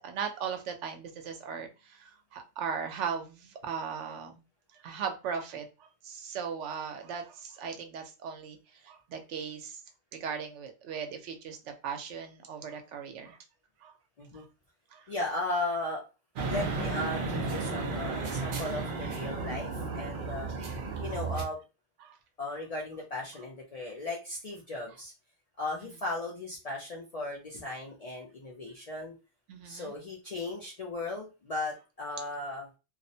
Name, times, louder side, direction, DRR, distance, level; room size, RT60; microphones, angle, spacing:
voice 1, 0.0-4.4 4.7-9.8 10.1-13.4 13.8-13.9 14.3-14.4 14.9-15.1 22.0-22.2 25.8-25.9 29.5-29.9, right 6 dB, 80° right, 6 dB, 0.9 m, -38 dB
voice 2, 15.1-16.0 16.5-20.5 21.0-21.6 22.4-25.1 25.6-29.1 29.6-32.7, left 2 dB, 55° left, -2 dB, 0.4 m, -36 dB
sound 1, 16.4-21.4, right 3 dB, 60° right, 0.6 m, -33 dB
2.4 x 2.0 x 2.6 m, 0.30 s
omnidirectional pair, 1.2 m